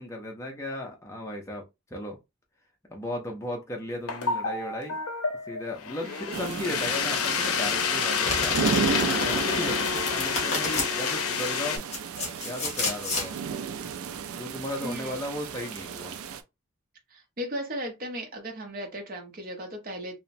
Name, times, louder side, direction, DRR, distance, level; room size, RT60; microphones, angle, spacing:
voice 1, 0.0-1.6 1.9-2.2 2.9-5.0 5.5-8.8 9.2-11.8 12.4-13.4 14.3-16.2, left 1 dB, 15° left, 0.5 m, -35 dB
sound 1, 4.1-11.8, left 6 dB, 90° left, 0.5 m, -28 dB
sound 2, 6.3-16.4, right 6 dB, 85° right, 0.4 m, -34 dB
Domestic sounds home sounds, 8.2-10.9 11.6-13.3, left 2 dB, 30° left, 1.0 m, -31 dB
voice 2, 9.6-9.9 14.8-15.2 17.1-20.1, equal, 40° right, 0.7 m, -36 dB
2.8 x 2.1 x 2.5 m
head